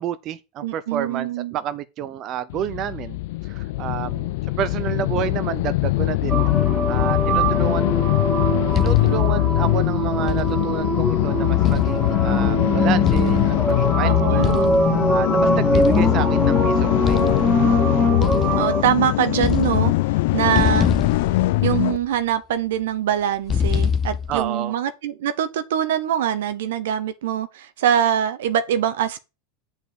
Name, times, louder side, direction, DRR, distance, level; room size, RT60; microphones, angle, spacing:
voice 1, 0.0-6.5 6.9-7.9 8.7-14.5 15.1-17.5 20.4-20.7 24.3-24.7, right 10 dB, 45° right, 0.8 m, -30 dB
voice 2, 0.6-1.5 14.0-14.8 18.6-19.9 20.3-20.9 21.6-29.2, right 10 dB, 75° right, 0.9 m, -23 dB
sound 1, 2.5-22.0, left 19 dB, 70° left, 0.4 m, -22 dB
sound 2, 6.3-18.8, equal, 5° left, 2.3 m, -23 dB
sound 3, 8.7-9.4 10.3-10.9 11.6-12.5 13.1-13.8 14.4-15.0 15.7-16.5 17.1-17.7 18.2-19.0 19.3-20.2 20.5-22.0 23.5-24.5, left 7 dB, 30° left, 0.7 m, -25 dB
8.1 x 4.4 x 7.0 m
hypercardioid pair, 95°, 0 cm